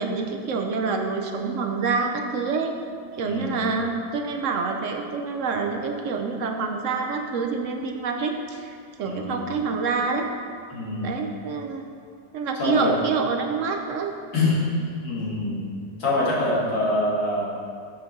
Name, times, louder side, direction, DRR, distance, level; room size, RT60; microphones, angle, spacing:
voice 1, 0.0-2.7 3.2-10.3 11.0-11.8 12.3-14.1, right 4 dB, 65° right, 3 dB, 0.8 m, -27 dB
voice 2, 3.2-3.7 9.0-9.4 10.7-11.1 12.6-13.0 14.3-14.6 14.9-15.7 16.0-17.5, left 2 dB, 65° left, -6 dB, 2.4 m, -25 dB
6.7 x 6.0 x 5.4 m, 2.3 s
omnidirectional pair, 1.8 m